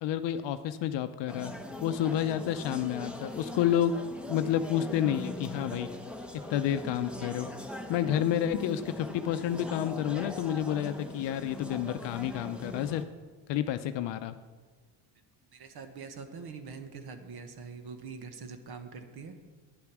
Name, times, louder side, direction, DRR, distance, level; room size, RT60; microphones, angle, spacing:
voice 1, 0.0-1.5 1.8-3.9 4.3-5.9 6.5-7.5 7.9-13.0 13.5-14.3, left 10 dB, 65° left, 10 dB, 0.7 m, -30 dB
sound 1, 1.3-13.1, left 1 dB, ahead, 1.0 m, -41 dB
voice 2, 15.5-19.3, right 5 dB, 50° right, 8 dB, 1.3 m, -44 dB
10.0 x 8.4 x 6.1 m, 1.4 s
cardioid pair, 100°, 47 cm